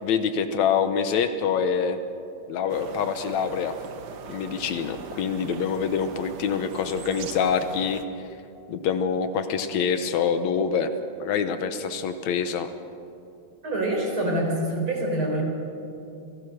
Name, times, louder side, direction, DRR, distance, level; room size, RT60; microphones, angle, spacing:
voice 1, 0.0-2.0 2.5-3.7 4.3-8.0 8.7-10.9 11.2-12.7, left 6 dB, 75° left, 9 dB, 2.2 m, -25 dB
sound 1, 2.7-8.1, right 6 dB, 85° right, 0.9 m, -40 dB
voice 2, 13.6-15.4, right 1 dB, 45° right, 0 dB, 4.8 m, -25 dB
27.5 x 17.5 x 6.4 m, 2.7 s
omnidirectional pair, 3.3 m